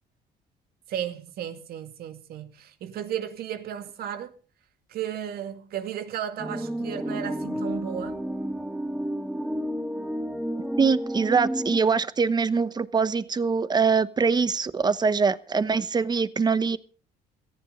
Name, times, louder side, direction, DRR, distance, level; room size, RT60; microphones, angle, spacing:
voice 1, 0.9-4.3 4.9-8.2, right 10 dB, 65° right, 2.1 m, -34 dB
sound 1, 6.4-11.8, equal, 5° right, 1.8 m, -31 dB
voice 2, 10.8-16.8, right 5 dB, 25° right, 1.0 m, -23 dB
18.0 x 15.0 x 4.0 m
cardioid pair, 110°, 17 cm